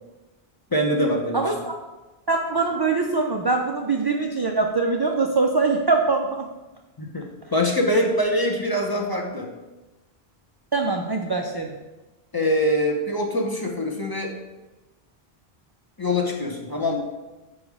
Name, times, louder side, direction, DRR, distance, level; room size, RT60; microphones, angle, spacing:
voice 1, 0.7-1.5 7.0-9.5 12.3-14.4 16.0-17.0, left 1 dB, 25° left, 1 dB, 0.7 m, -24 dB
voice 2, 1.3-1.7 2.3-6.5 10.7-11.7, right 3 dB, 40° right, 2 dB, 0.4 m, -23 dB
5.3 x 5.3 x 4.8 m, 1.1 s
omnidirectional pair, 1.1 m